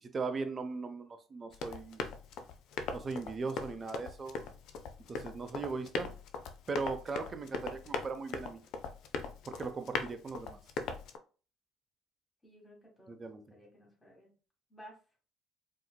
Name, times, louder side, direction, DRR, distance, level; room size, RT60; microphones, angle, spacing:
voice 1, 0.0-2.0 2.9-4.5 5.1-6.1 6.7-8.6 9.5-10.6 13.1-13.4, right 4 dB, 35° right, 0.6 m, -38 dB
Run, 1.5-11.2, left 5 dB, 70° left, 0.4 m, -40 dB
voice 2, 12.4-14.3 14.7-15.0, equal, 20° left, 1.6 m, -56 dB
4.1 x 2.7 x 2.2 m
supercardioid pair, 70°, 0 cm